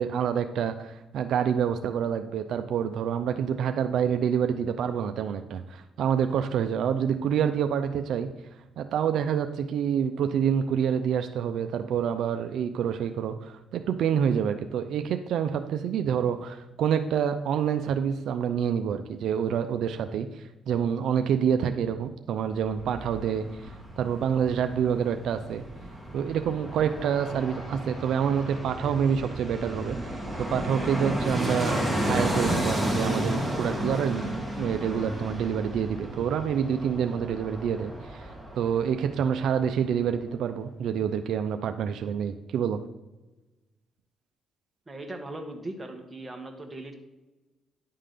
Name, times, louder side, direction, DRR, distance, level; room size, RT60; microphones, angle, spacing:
voice 1, 0.0-8.3 8.8-25.6 26.1-30.0 30.4-42.8, right 8 dB, 75° right, 8 dB, 0.5 m, -27 dB
Fixed-wing aircraft airplane, 22.5-39.5 39.8-39.9, right 1 dB, 5° left, 2.0 m, -32 dB
voice 2, 44.9-46.9, right 2 dB, 20° right, 3 dB, 1.5 m, -39 dB
10.0 x 3.8 x 6.7 m, 1.1 s
cardioid pair, 90°, 0 cm